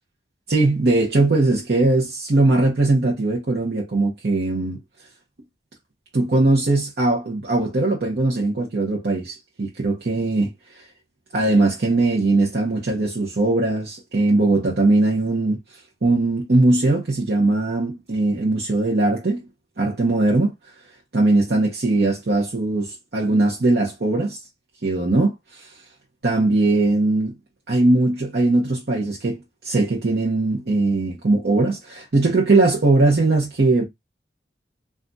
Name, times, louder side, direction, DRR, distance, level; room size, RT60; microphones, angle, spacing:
voice 1, 0.5-4.8 6.1-10.8 11.3-19.4 19.8-20.7 21.1-24.4 24.8-25.7 26.2-27.3 27.7-33.9, right 2 dB, 65° right, 0.8 m, -20 dB
3.8 x 2.4 x 2.2 m
head